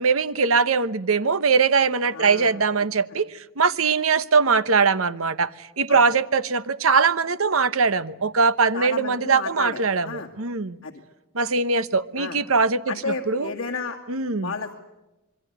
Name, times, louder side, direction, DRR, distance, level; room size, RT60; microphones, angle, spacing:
voice 1, 0.0-3.3 3.6-5.5 5.8-10.8 11.3-13.5 14.1-14.5, right 5 dB, 85° right, 14 dB, 1.0 m, -21 dB
voice 2, 2.1-2.6 5.9-6.0 8.7-10.3 10.8-10.9 12.2-12.4 12.9-14.0 14.4-14.8, left 4 dB, 65° left, -3 dB, 2.3 m, -32 dB
26.0 x 23.0 x 8.1 m, 1.0 s
head